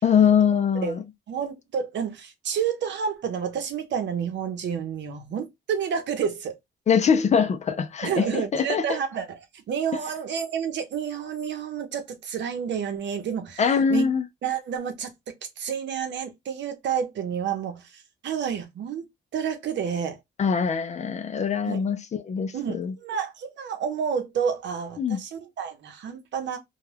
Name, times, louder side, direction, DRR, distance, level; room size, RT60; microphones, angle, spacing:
voice 1, 0.0-1.0 6.9-9.0 13.6-14.3 20.4-22.9 25.0-25.2, left 6 dB, 35° left, 0.4 m, -23 dB
voice 2, 1.3-6.6 8.0-14.1 14.4-15.1 15.6-19.1 19.3-20.2 21.7-21.8 22.5-26.6, right 7 dB, 65° right, 0.8 m, -30 dB
2.2 x 2.2 x 3.2 m
cardioid pair, 90°, 20 cm